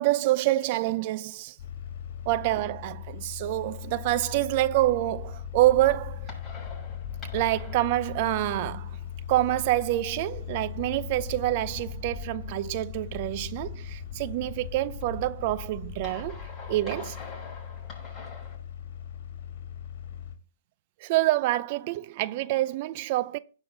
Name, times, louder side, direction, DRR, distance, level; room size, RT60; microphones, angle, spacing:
voice 1, 0.0-1.6 2.3-6.3 7.3-8.9 9.3-16.4 16.7-17.2 21.0-23.4, right 16 dB, 45° right, 0.5 m, -27 dB
sound 1, 1.6-20.4, left 9 dB, 60° left, 2.5 m, -39 dB
sound 2, 5.2-18.6, left 2 dB, 15° left, 6.6 m, -44 dB
17.0 x 5.6 x 3.9 m
hypercardioid pair, 125°, 0 cm